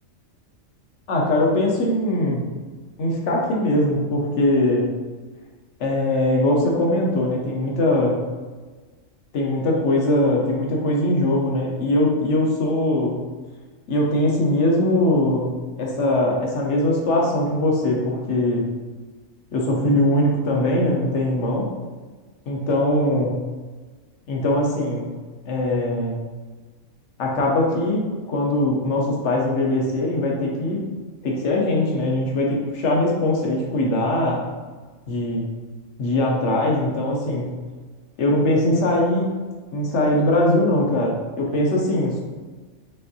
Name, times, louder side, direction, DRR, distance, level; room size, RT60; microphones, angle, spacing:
voice 1, 1.1-2.4 3.0-4.9 5.8-8.2 9.3-13.1 13.9-18.7 19.5-21.7 22.5-23.4 24.3-25.1 25.5-26.2 27.2-30.8 31.2-34.4 35.1-35.4 36.0-37.5 38.2-39.3 39.7-42.2, left 1 dB, 65° left, -1 dB, 1.1 m, -21 dB
5.5 x 2.6 x 2.7 m, 1.4 s
omnidirectional pair, 1.3 m